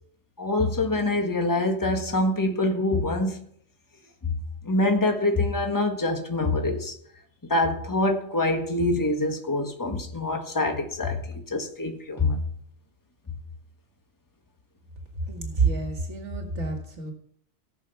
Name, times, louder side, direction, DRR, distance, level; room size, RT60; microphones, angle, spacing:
voice 1, 0.4-3.4 4.2-4.3 4.6-6.9 7.5-12.4, left 2 dB, 15° left, 1.6 m, -25 dB
voice 2, 15.2-17.1, right 4 dB, 70° right, 2.1 m, -28 dB
17.5 x 6.3 x 5.7 m
omnidirectional pair, 1.3 m